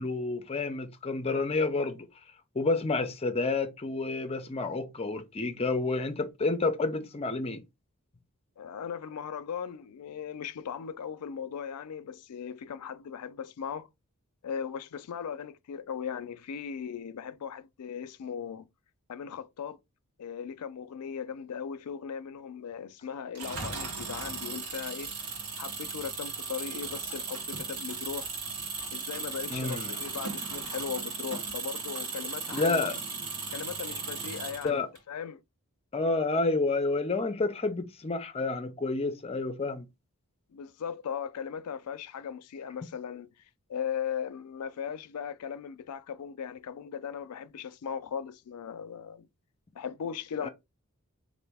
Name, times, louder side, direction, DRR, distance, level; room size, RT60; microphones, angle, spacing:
voice 1, 0.0-2.1 2.6-7.6 29.5-30.0 32.5-32.9 34.6-34.9 35.9-39.9 50.4-50.5, left 3 dB, 25° left, 0.5 m, -29 dB
voice 2, 8.6-13.9 14.4-18.7 19.1-19.8 20.2-25.1 25.6-28.3 28.9-32.9 33.5-35.4 40.5-43.3 43.7-49.3 49.7-50.5, left 7 dB, 90° left, 0.4 m, -38 dB
Engine, 23.3-35.0, right 4 dB, 85° right, 1.0 m, -37 dB
4.1 x 2.5 x 3.4 m
head